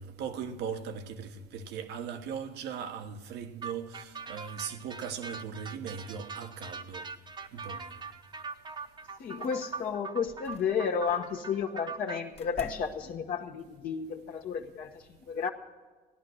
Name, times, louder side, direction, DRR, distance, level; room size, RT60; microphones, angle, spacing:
voice 1, 0.0-7.1 7.5-8.0, right 7 dB, 80° right, 1.1 m, -39 dB
sound 1, 3.6-12.2, right 5 dB, 25° right, 0.9 m, -42 dB
voice 2, 9.2-15.5, left 6 dB, 60° left, 1.1 m, -32 dB
sound 2, 9.4-9.8 10.3-11.3 12.3-13.3, left 4 dB, 35° left, 1.1 m, -49 dB
15.5 x 11.0 x 6.3 m
cardioid pair, 110°, 17 cm